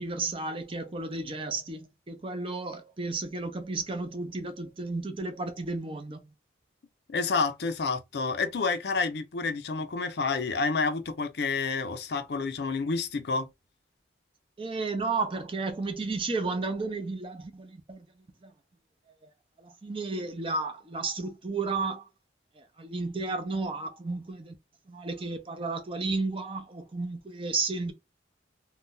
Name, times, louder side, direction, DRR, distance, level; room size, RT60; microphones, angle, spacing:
voice 1, 0.0-6.2 14.6-18.1 18.4-18.5 19.2-19.3 19.6-22.1 22.6-24.5 24.9-27.9, right 3 dB, 30° right, 0.5 m, -33 dB
voice 2, 7.1-13.5, left 4 dB, 60° left, 0.5 m, -29 dB
2.6 x 2.2 x 3.6 m
head